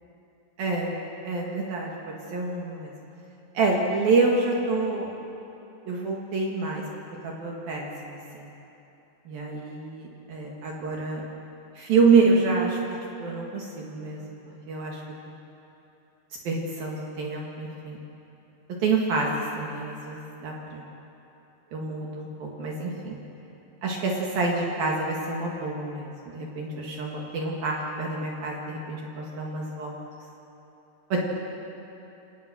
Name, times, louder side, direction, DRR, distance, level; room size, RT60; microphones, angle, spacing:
voice 1, 0.6-2.9 3.5-5.1 5.9-6.8 7.2-8.5 9.3-11.2 11.8-12.8 13.2-14.4 14.7-15.0 16.5-18.0 18.8-20.9 21.7-23.2 23.8-30.0 31.1-31.2, right 3 dB, 55° right, -2 dB, 3.5 m, -27 dB
28.5 x 27.0 x 6.2 m, 3.0 s
omnidirectional pair, 5.5 m